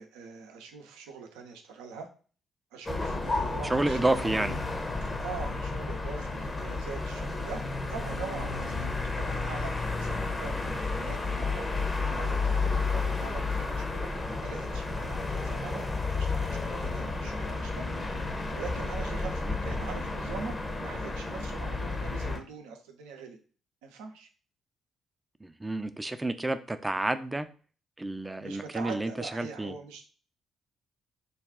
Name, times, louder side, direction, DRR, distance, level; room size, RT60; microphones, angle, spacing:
voice 1, 0.0-2.1 2.7-4.0 5.2-15.8 16.1-18.0 18.5-20.6 20.8-23.4 23.8-24.3 28.4-30.0, right 5 dB, 75° right, 4 dB, 0.6 m, -43 dB
sound 1, 2.9-22.4, left 3 dB, 30° left, 0.8 m, -32 dB
voice 2, 3.7-4.6 19.5-19.6 25.4-27.5 28.0-29.7, right 2 dB, 20° right, 10 dB, 0.5 m, -30 dB
4.0 x 2.3 x 3.6 m, 0.38 s
hypercardioid pair, 45°, 0 cm